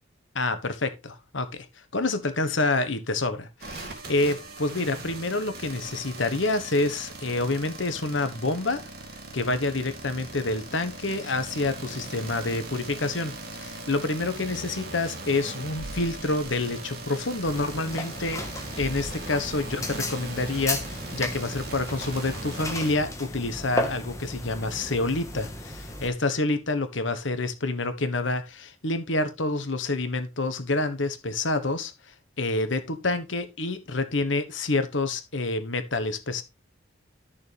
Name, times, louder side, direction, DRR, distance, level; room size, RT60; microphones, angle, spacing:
voice 1, 0.3-1.7 1.9-8.8 9.3-18.4 18.8-31.9 32.4-36.4, left 2 dB, 70° left, 1.3 m, -28 dB
sound 1, 3.6-23.0, right 2 dB, 50° right, 2.5 m, -40 dB
sound 2, 15.8-17.4 18.2-18.5 18.8-21.0, right 2 dB, 50° left, 5.6 m, -44 dB
sound 3, 17.5-26.1, left 1 dB, 15° left, 1.5 m, -35 dB
11.5 x 6.8 x 3.4 m
head